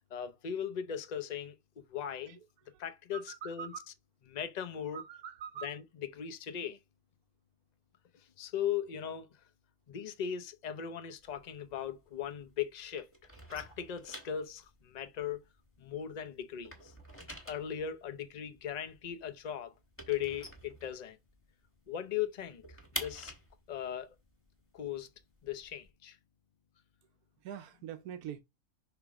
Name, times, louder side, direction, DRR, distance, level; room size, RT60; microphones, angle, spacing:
voice 1, 0.1-1.5 1.9-2.4 2.8-3.7 4.3-5.0 5.6-6.8 8.4-9.3 9.9-13.1 13.5-15.4 15.8-16.9 17.5-19.7 20.1-21.2 21.9-22.6 23.0-23.3 23.7-24.1 24.7-25.1 25.4-26.2, left 9 dB, 45° left, 0.6 m, -38 dB
voice 2, 3.1-3.9 4.9-5.8 27.4-28.4, right 8 dB, 85° right, 1.2 m, -44 dB
sound 1, 11.2-12.7 12.9-16.1 16.4-21.5 21.8-21.9 22.2-25.9, equal, 10° left, 1.6 m, -47 dB
5.9 x 3.6 x 4.8 m
omnidirectional pair, 1.6 m